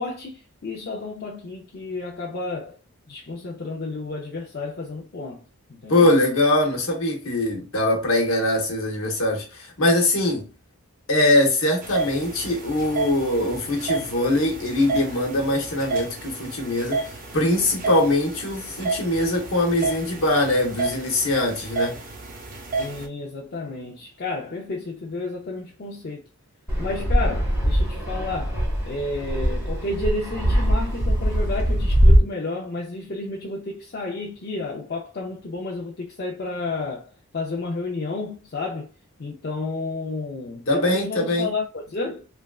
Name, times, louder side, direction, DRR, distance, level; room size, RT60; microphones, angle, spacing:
voice 1, 0.0-2.8 3.1-5.4 5.7-6.2 22.8-26.3 26.8-38.9 39.2-42.3, left 3 dB, 45° left, 0.5 m, -31 dB
voice 2, 5.9-10.5 11.1-17.0 17.3-22.0 40.7-41.5, left 1 dB, 65° left, 1.0 m, -22 dB
sound 1, 11.8-23.1, right 3 dB, 35° right, 0.6 m, -31 dB
Fixed-wing aircraft airplane, 26.7-32.2, equal, 10° right, 1.0 m, -21 dB
3.3 x 2.3 x 2.3 m
head